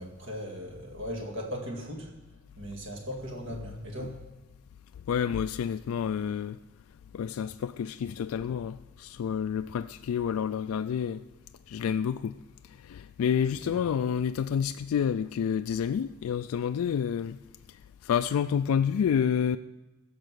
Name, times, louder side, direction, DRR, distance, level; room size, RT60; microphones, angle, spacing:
voice 1, 0.0-2.1 2.6-4.2 13.6-13.8, equal, 60° right, 2.2 m, -38 dB
voice 2, 5.1-6.6 7.1-11.2 11.7-12.3 12.9-17.4 18.0-19.6, left 7 dB, 80° left, 0.3 m, -29 dB
15.5 x 6.7 x 6.3 m
head